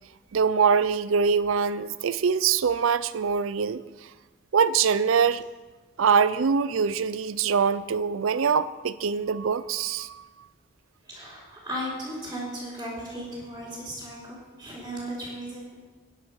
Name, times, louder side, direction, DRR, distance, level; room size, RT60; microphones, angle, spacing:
voice 1, 0.3-3.8 4.5-5.5 6.0-10.3, right 6 dB, 85° right, 16 dB, 0.5 m, -23 dB
voice 2, 11.0-15.8, equal, 15° right, -10 dB, 3.9 m, -36 dB
11.5 x 10.0 x 6.2 m, 1.3 s
head